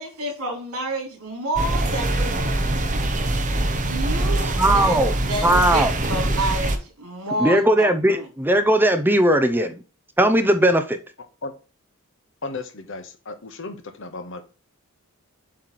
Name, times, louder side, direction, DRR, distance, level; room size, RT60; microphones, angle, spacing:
voice 1, 0.0-2.5 3.8-8.3, right 2 dB, 75° right, 3.3 m, -29 dB
sound 1, 1.6-6.8, right 1 dB, 35° right, 0.9 m, -23 dB
voice 2, 4.6-5.1 5.4-5.9 7.4-9.8 10.2-11.0, right 1 dB, 10° right, 0.6 m, -18 dB
voice 3, 11.2-11.5 12.4-14.4, left 3 dB, 55° left, 1.1 m, -35 dB
7.7 x 3.3 x 5.9 m
head